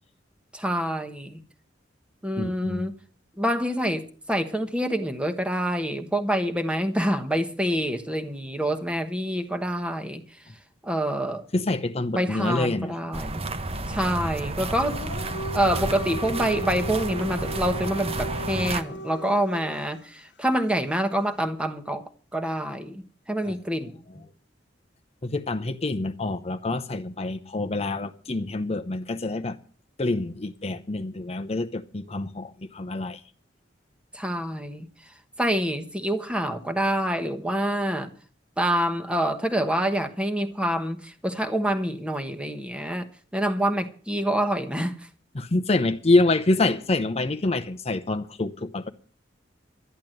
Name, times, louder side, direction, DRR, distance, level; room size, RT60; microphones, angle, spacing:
voice 1, 0.5-1.4 2.2-2.9 3.4-10.2 10.8-11.4 12.1-13.4 13.9-15.0 15.5-22.0 22.3-24.0 34.1-34.9 35.4-38.1 38.6-43.1 43.3-45.0, right 1 dB, 5° right, 1.2 m, -26 dB
voice 2, 2.4-2.9 11.5-12.9 23.5-23.6 25.2-29.6 30.0-33.2 45.3-48.9, left 2 dB, 35° left, 0.8 m, -26 dB
sound 1, 13.1-18.8, right 2 dB, 35° right, 1.0 m, -31 dB
Dog, 14.7-19.9, equal, 65° left, 1.0 m, -36 dB
12.5 x 10.5 x 7.8 m
head